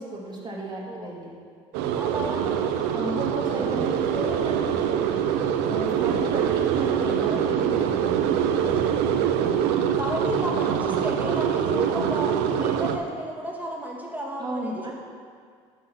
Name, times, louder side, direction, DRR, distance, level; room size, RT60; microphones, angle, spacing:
voice 1, 0.0-1.3 2.9-5.0 5.7-8.3 14.4-14.9, right 1 dB, 25° right, -3 dB, 2.8 m, -33 dB
voice 2, 0.8-1.4 1.9-2.6 8.9-14.9, equal, 10° right, -2 dB, 2.2 m, -33 dB
sound 1, 1.7-13.0, right 8 dB, 80° right, 0.7 m, -24 dB
10.0 x 6.5 x 6.0 m, 2.1 s
supercardioid pair, 80°, 17 cm